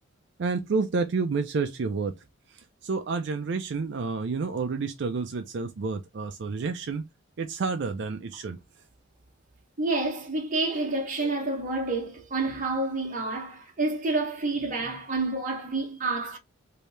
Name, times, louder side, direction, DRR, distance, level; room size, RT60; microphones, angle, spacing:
voice 1, 0.4-2.1 2.5-7.0 7.4-8.6, right 4 dB, 60° right, 0.4 m, -29 dB
voice 2, 9.8-16.4, right 2 dB, 40° right, 1.0 m, -29 dB
3.1 x 2.7 x 3.2 m
head